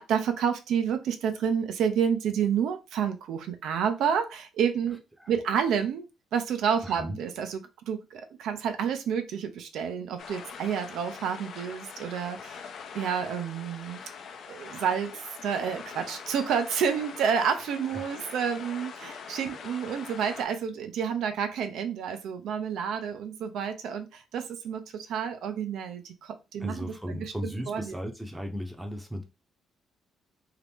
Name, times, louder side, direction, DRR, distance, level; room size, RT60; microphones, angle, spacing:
voice 1, 0.0-5.0 5.3-12.6 12.9-14.0 14.5-27.3 27.7-27.9, right 7 dB, 75° right, 0.6 m, -29 dB
voice 2, 6.8-7.2 17.9-18.3 26.6-29.2, equal, 5° right, 0.7 m, -36 dB
sound 1, 10.2-20.4, left 6 dB, 60° left, 0.6 m, -43 dB
2.8 x 2.5 x 3.5 m
cardioid pair, 125°, 0 cm